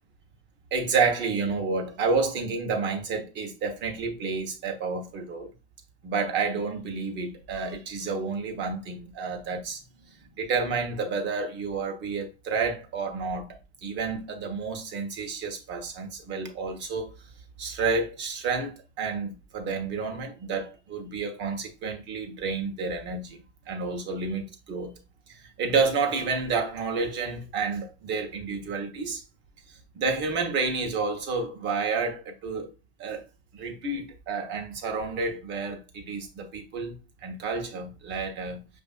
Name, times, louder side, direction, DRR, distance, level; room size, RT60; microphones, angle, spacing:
voice 1, 0.7-5.5 6.0-9.8 10.4-13.6 13.8-17.1 17.6-23.4 23.7-24.9 25.3-29.2 29.9-32.7 33.0-33.2 33.5-36.9 37.2-38.7, right 4 dB, 35° right, 1.0 m, -30 dB
5.3 x 2.5 x 2.4 m
hypercardioid pair, 110°, 32 cm